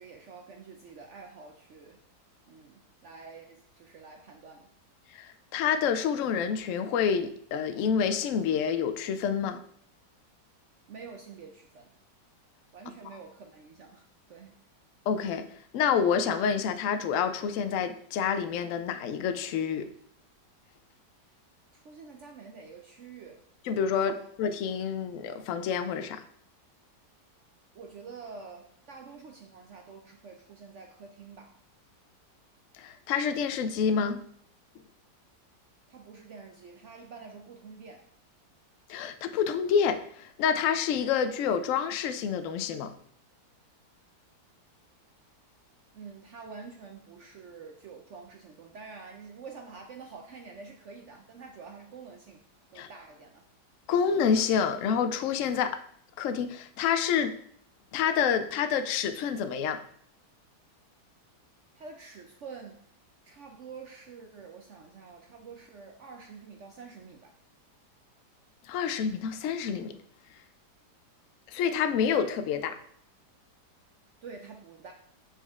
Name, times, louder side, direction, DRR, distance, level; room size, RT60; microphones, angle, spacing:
voice 1, 0.0-2.0 2.5-4.7 10.9-11.9 12.7-14.6 21.7-23.4 23.9-24.3 27.7-31.5 35.9-38.1 45.9-52.4 52.7-53.5 61.7-62.8 63.2-67.3 74.2-74.9, right 5 dB, 70° right, 3 dB, 0.7 m, -47 dB
voice 2, 5.1-9.6 15.1-15.5 15.7-19.9 23.7-26.2 32.8-34.2 38.9-42.9 52.8-52.9 53.9-55.8 56.2-57.3 57.9-59.8 68.7-69.9 71.5-72.8, left 7 dB, 70° left, 10 dB, 0.7 m, -28 dB
7.2 x 4.3 x 3.5 m, 0.65 s
omnidirectional pair, 1.8 m